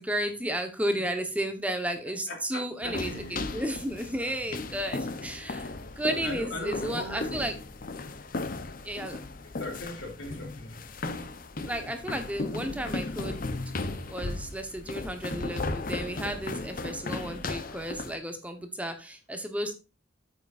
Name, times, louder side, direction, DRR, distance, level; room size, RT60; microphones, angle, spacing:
voice 1, 0.0-7.5 8.8-9.3 11.6-13.4 14.1-19.7, right 1 dB, 5° right, 6 dB, 1.2 m, -33 dB
voice 2, 2.3-3.6 4.2-4.5 6.2-7.3 9.4-10.8, left 1 dB, 85° left, 2 dB, 3.4 m, -39 dB
sound 1, 2.8-18.2, left 2 dB, 45° left, 0.8 m, -36 dB
9.3 x 8.0 x 2.6 m, 0.30 s
head